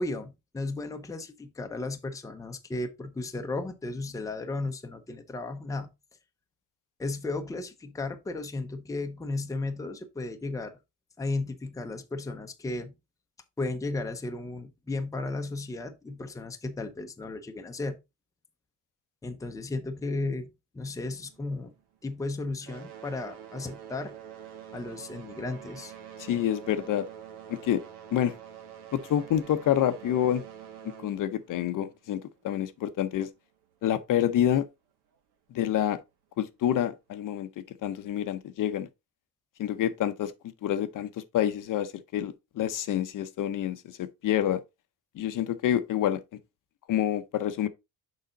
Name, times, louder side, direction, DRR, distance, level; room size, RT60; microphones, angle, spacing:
voice 1, 0.0-5.9 7.0-10.7 11.2-12.9 13.6-18.0 19.2-21.7 22.0-24.1 24.7-25.9, left 2 dB, 10° left, 0.7 m, -34 dB
sound 1, 20.8-22.2 22.5-32.7 33.6-33.7 34.4-34.5 35.1-35.2, right 9 dB, 85° right, 2.0 m, -46 dB
voice 2, 26.2-27.0 27.5-27.8 28.1-28.3 28.9-30.4 31.0-33.3 33.8-34.7 35.5-36.0 36.4-38.9 39.6-40.3 40.6-44.6 45.2-46.2 46.9-47.7, left 11 dB, 55° left, 0.7 m, -27 dB
6.7 x 4.9 x 3.9 m
cardioid pair, 160°, 39 cm